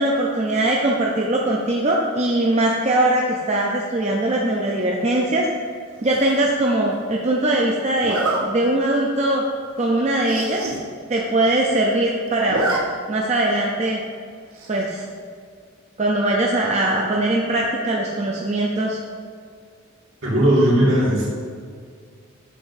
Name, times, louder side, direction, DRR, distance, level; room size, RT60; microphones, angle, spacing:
voice 1, 0.0-5.4 6.0-9.4 9.8-10.6 11.1-12.6 13.1-14.0 14.7-15.0 16.0-19.0, right 1 dB, 30° right, -2 dB, 0.5 m, -21 dB
Zipper (clothing), 6.1-6.5 8.0-8.4 9.0-9.1 9.5-9.6 9.8-9.9 10.2-10.8 11.1-11.2 11.4-12.0 12.3-12.8 13.1-13.2 14.5-14.9, right 2 dB, 85° right, 1.1 m, -26 dB
voice 2, 20.2-21.3, right 1 dB, 65° right, -5 dB, 2.0 m, -17 dB
8.3 x 7.2 x 2.6 m, 2.1 s
head